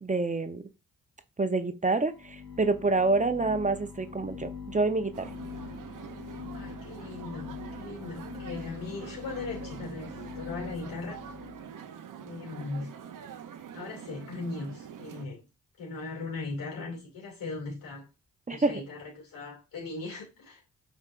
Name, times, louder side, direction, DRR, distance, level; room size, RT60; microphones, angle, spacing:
voice 1, 0.0-0.6 1.4-5.3 18.5-18.8, right 3 dB, 25° right, 0.7 m, -27 dB
sound 1, 2.0-11.7, left 5 dB, 60° left, 1.6 m, -43 dB
sound 2, 5.1-15.3, right 8 dB, 70° right, 0.7 m, -45 dB
voice 2, 6.5-11.2 12.2-12.9 13.7-15.4 15.8-18.1 18.5-20.6, left 3 dB, 85° left, 2.6 m, -39 dB
5.7 x 3.5 x 2.5 m
cardioid pair, 55°, 33 cm